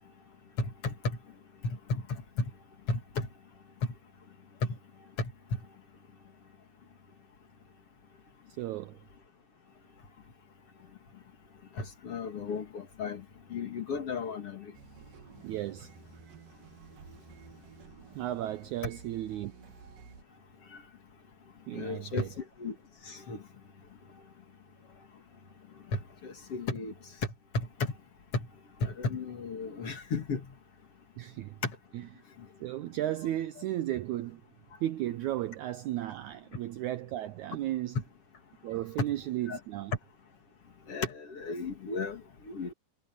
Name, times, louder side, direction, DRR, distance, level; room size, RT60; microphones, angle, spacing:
voice 1, 1.6-2.0 2.9-3.3 11.8-13.2 13.5-14.7 21.7-22.2 22.6-22.7 23.1-23.4 25.9-26.9 27.5-27.7 28.8-30.4 39.5-39.6 40.9-42.7, left 4 dB, 45° left, 2.7 m, -34 dB
voice 2, 8.6-9.0 15.4-15.9 18.1-19.5 21.7-22.3 31.2-31.6 31.9-32.1 32.6-34.4 34.8-38.0 38.6-39.9, right 13 dB, 90° right, 1.6 m, -34 dB
sound 1, 14.7-20.2, right 6 dB, 65° right, 3.7 m, -52 dB
omnidirectional pair, 4.2 m